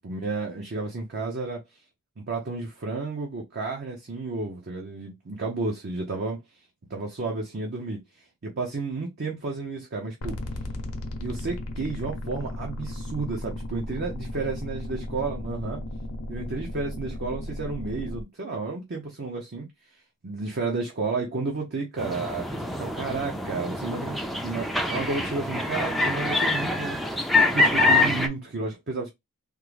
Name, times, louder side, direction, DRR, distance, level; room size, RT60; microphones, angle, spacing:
voice 1, 0.0-1.6 2.3-6.4 6.9-8.0 8.4-10.3 11.2-15.8 16.3-19.7 20.2-24.2 24.4-29.1, right 3 dB, 50° right, 0.6 m, -32 dB
sound 1, 10.2-18.2, left 1 dB, 65° left, 0.7 m, -35 dB
sound 2, 22.0-28.3, left 2 dB, ahead, 0.4 m, -25 dB
3.6 x 2.0 x 3.1 m
head